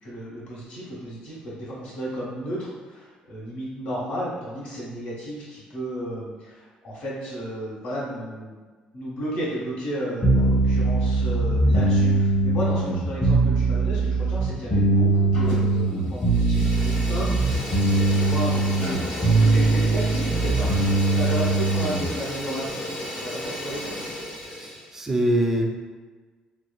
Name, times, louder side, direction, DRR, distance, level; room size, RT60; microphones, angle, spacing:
voice 1, 0.0-8.6 8.9-17.5 18.1-24.0, equal, 65° left, -7 dB, 1.3 m, -33 dB
sound 1, 10.2-22.1, right 2 dB, 30° left, 1.0 m, -21 dB
Fire, 15.3-15.8 16.1-24.9, left 1 dB, 85° left, 1.0 m, -34 dB
voice 2, 24.5-25.7, right 1 dB, 15° right, 2 dB, 0.4 m, -24 dB
3.1 x 2.4 x 2.3 m, 1.4 s
cardioid pair, 110°, 3 cm